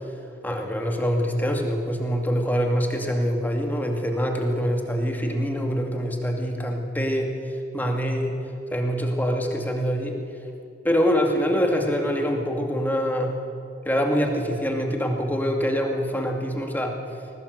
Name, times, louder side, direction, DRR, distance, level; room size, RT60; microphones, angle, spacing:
voice 1, 0.4-7.3 7.7-8.4 8.7-10.2 10.8-13.3 13.8-16.9, equal, 10° left, 2 dB, 2.3 m, -24 dB
21.5 x 19.0 x 8.1 m, 2.6 s
head